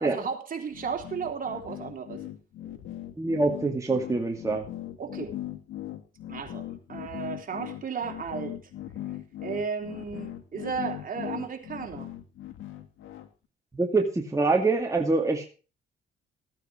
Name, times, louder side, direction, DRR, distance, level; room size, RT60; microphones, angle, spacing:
voice 1, 0.0-2.2 5.0-5.4 6.3-8.6 9.4-12.1, right 6 dB, 45° right, 3 dB, 3.6 m, -34 dB
sound 1, 0.7-13.3, left 13 dB, 85° left, 1.9 m, -39 dB
voice 2, 3.2-4.7 13.7-15.4, right 3 dB, 15° right, 1 dB, 2.2 m, -25 dB
15.0 x 9.2 x 5.0 m, 0.35 s
cardioid pair, 90°, 20 cm